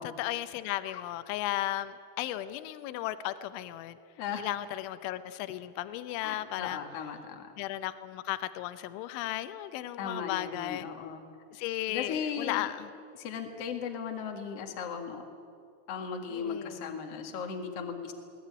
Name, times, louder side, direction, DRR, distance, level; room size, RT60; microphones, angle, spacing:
voice 1, 0.0-4.0 4.4-6.8 7.6-10.9 11.5-12.9 16.3-16.9, left 14 dB, 85° left, 12 dB, 3.2 m, -35 dB
voice 2, 6.2-7.5 10.0-11.2 11.9-12.7 13.2-15.2 15.9-18.1, left 6 dB, 50° left, 4 dB, 2.0 m, -37 dB
21.0 x 18.5 x 9.7 m, 2.3 s
omnidirectional pair, 5.4 m